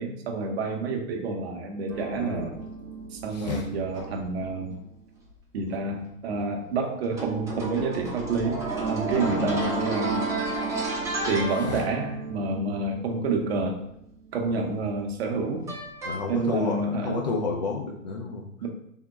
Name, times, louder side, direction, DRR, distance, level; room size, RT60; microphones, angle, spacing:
voice 1, 0.0-2.5 3.1-4.8 5.5-10.2 11.3-13.8 14.3-15.7 16.3-17.3 18.6-18.7, right 3 dB, 50° right, 3 dB, 0.7 m, -29 dB
sound 1, 1.9-4.5 7.1-15.0 15.7-16.2, right 3 dB, 10° right, 0.6 m, -32 dB
voice 2, 2.1-2.6 3.3-3.7 9.1-9.5 11.6-11.8 16.0-18.5, left 4 dB, 35° left, 0 dB, 0.4 m, -31 dB
3.5 x 2.1 x 3.9 m, 0.74 s
figure-of-eight pair, 105°, 41 cm